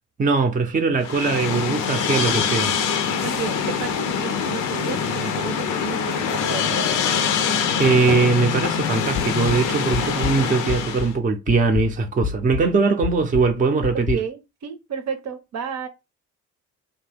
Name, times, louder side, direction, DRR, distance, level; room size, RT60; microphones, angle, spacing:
voice 1, 0.2-2.7 7.8-14.2, right 4 dB, 25° right, 0.5 m, -21 dB
sound 1, 1.0-11.1, left 7 dB, 85° left, 0.6 m, -24 dB
voice 2, 3.2-6.9 13.8-15.9, right 7 dB, 60° right, 0.7 m, -32 dB
sound 2, 9.2-11.2 11.5-14.1, left 7 dB, 40° left, 0.5 m, -30 dB
2.7 x 2.2 x 3.3 m
cardioid pair, 90°, 30 cm